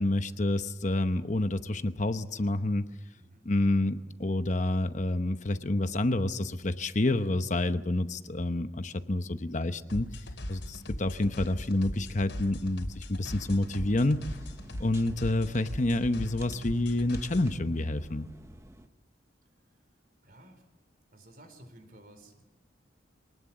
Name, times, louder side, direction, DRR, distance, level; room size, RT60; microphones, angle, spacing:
voice 1, 0.0-2.9 3.4-10.1 10.5-14.2 14.8-18.3, left 2 dB, 40° left, 10 dB, 0.9 m, -28 dB
voice 2, 3.1-3.5 19.7-19.8 20.2-20.6 21.1-22.4, right 1 dB, 50° right, 8 dB, 4.1 m, -54 dB
sound 1, 9.9-17.6, left 1 dB, 75° left, 3.5 m, -40 dB
sound 2, 13.3-18.9, right 1 dB, 15° right, 0.9 m, -51 dB
24.5 x 19.0 x 7.4 m, 1.0 s
head